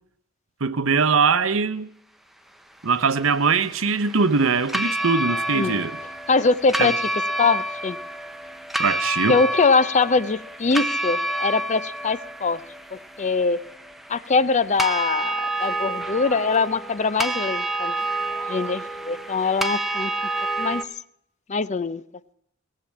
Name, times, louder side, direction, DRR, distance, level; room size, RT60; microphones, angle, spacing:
voice 1, 0.6-1.9 2.8-6.0 6.8-6.9 8.8-9.4, right 5 dB, 90° right, 0.9 m, -21 dB
sound 1, 2.9-20.8, right 1 dB, ahead, 0.7 m, -29 dB
voice 2, 5.5-5.8 6.3-7.0 7.4-8.0 9.3-12.6 12.9-13.6 14.1-18.0 18.5-20.1 20.6-20.8 21.5-22.0, left 4 dB, 35° left, 0.5 m, -22 dB
18.0 x 7.6 x 8.6 m
head